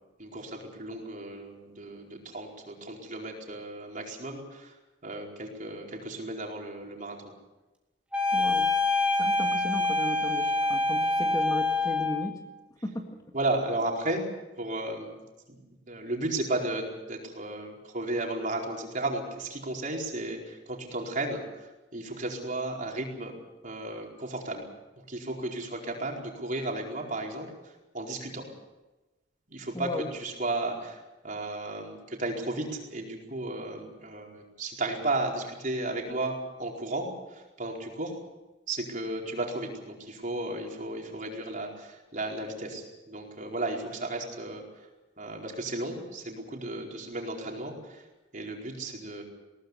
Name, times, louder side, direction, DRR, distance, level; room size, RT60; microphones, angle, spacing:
voice 1, 0.2-4.7 5.0-7.2 13.3-14.3 14.6-15.2 15.5-15.6 15.9-21.4 21.9-23.4 23.6-24.7 25.1-28.4 29.5-38.2 38.7-44.9 45.2-48.0 48.3-49.2, right 2 dB, 45° right, 0 dB, 4.7 m, -34 dB
sound 1, 8.1-12.3, left 2 dB, 5° right, 3.5 m, -26 dB
voice 2, 8.3-8.7 9.2-12.4 12.8-13.2 29.7-30.1, equal, 20° left, 3 dB, 1.9 m, -35 dB
21.0 x 18.5 x 8.2 m, 1.1 s
head